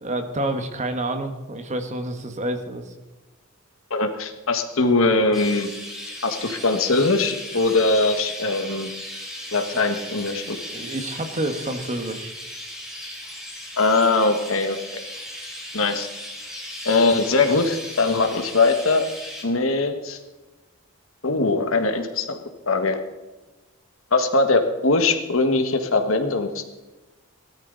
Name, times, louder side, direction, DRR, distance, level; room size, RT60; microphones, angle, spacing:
voice 1, 0.0-2.9 10.7-12.3, right 1 dB, 35° right, 7 dB, 1.5 m, -28 dB
voice 2, 3.9-5.7 6.2-8.9 9.5-10.6 13.8-15.0 15.7-16.1 16.8-19.1 19.4-20.2 21.2-22.4 22.7-23.0 24.1-26.6, left 3 dB, 70° left, 7 dB, 1.7 m, -21 dB
Chirp tweet, 5.3-19.4, left 1 dB, ahead, 3.5 m, -37 dB
17.5 x 13.0 x 4.1 m, 1.1 s
head